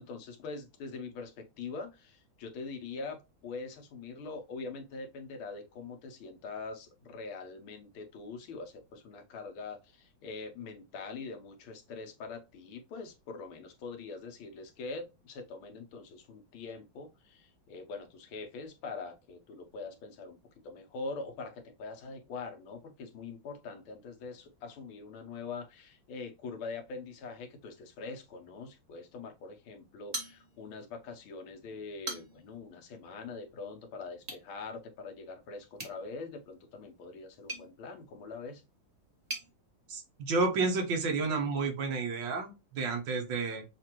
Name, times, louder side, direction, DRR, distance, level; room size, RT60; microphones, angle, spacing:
voice 1, 0.0-20.4 20.6-38.6, left 4 dB, 90° left, 1.7 m, -43 dB
sound 1, 30.1-30.9 31.2-31.3 31.8-32.6 34.2-34.5 35.7-39.5, right 2 dB, 25° right, 1.0 m, -43 dB
voice 2, 39.9-43.6, right 3 dB, 70° right, 1.7 m, -31 dB
6.3 x 2.5 x 2.9 m
omnidirectional pair, 2.2 m